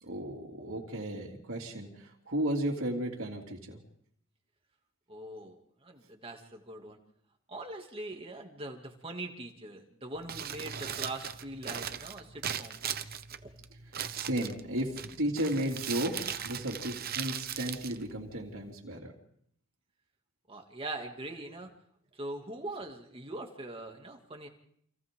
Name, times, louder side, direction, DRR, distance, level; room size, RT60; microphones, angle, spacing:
voice 1, 0.0-3.8 14.1-19.1, right 1 dB, 75° right, -2 dB, 3.1 m, -34 dB
voice 2, 5.1-5.6 5.8-7.0 7.5-12.8 13.4-13.5 20.5-21.7 22.1-24.5, right 2 dB, 25° right, 2 dB, 2.6 m, -42 dB
Crumpling crinkling, 10.1-18.7, right 8 dB, 45° right, 0.9 m, -39 dB
29.5 x 27.0 x 3.9 m, 0.69 s
head